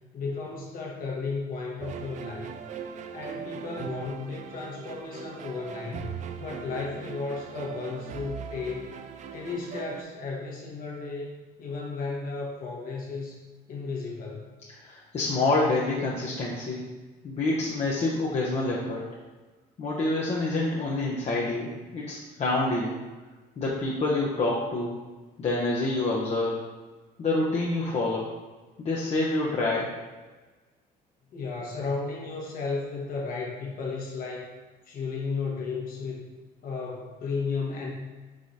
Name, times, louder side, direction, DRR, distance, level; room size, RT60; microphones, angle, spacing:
voice 1, 0.1-2.5 3.1-6.1 6.4-8.9 9.3-11.3 11.6-13.4 13.7-14.5 31.3-34.5 34.8-36.2 36.6-37.9, left 4 dB, 55° left, -2 dB, 1.2 m, -34 dB
Happy Background Music Orchestra (Loop), 1.8-10.0, right 7 dB, 45° right, 0.4 m, -40 dB
voice 2, 14.7-16.8 17.2-19.0 19.8-23.0 23.6-25.0 25.4-26.6 27.2-28.3 28.8-29.9, left 2 dB, 40° left, -5 dB, 0.7 m, -27 dB
4.8 x 3.7 x 2.7 m, 1.3 s
cardioid pair, 110°, 17 cm